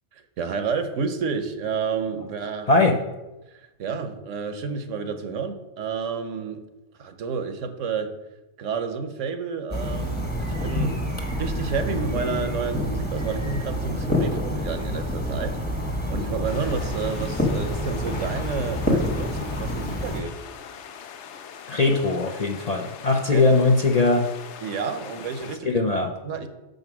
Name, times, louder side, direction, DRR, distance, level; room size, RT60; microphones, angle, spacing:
voice 1, 0.1-2.7 3.5-6.6 7.0-8.1 8.6-11.0 11.4-15.6 15.8-20.4 23.3-23.5 24.6-25.8 26.2-26.5, right 5 dB, 75° right, 9 dB, 1.1 m, -30 dB
sound 1, 9.7-20.2, left 1 dB, 10° left, 1.1 m, -27 dB
sound 2, 16.4-25.6, left 7 dB, 70° left, 0.9 m, -42 dB
voice 2, 21.7-24.3 25.6-26.1, left 3 dB, 45° left, 2 dB, 0.5 m, -20 dB
6.8 x 5.2 x 6.0 m, 1.0 s
omnidirectional pair, 1.3 m